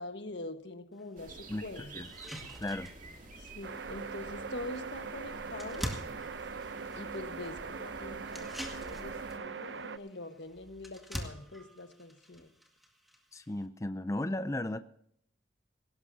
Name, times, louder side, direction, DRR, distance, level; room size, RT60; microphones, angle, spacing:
voice 1, 0.0-2.0 3.4-5.9 6.9-12.5, left 2 dB, 75° left, 8 dB, 1.4 m, -44 dB
sound 1, 1.0-1.1 1.5-1.6 2.0-13.7, equal, ahead, 2.0 m, -46 dB
sound 2, 1.2-9.4, right 2 dB, 45° right, 2.1 m, -50 dB
voice 2, 1.5-2.1 2.5-2.9 13.3-14.8, left 1 dB, 15° left, 11 dB, 0.5 m, -35 dB
sound 3, 3.6-10.0, right 5 dB, 75° right, 0.7 m, -41 dB
18.0 x 18.0 x 2.8 m, 0.66 s
head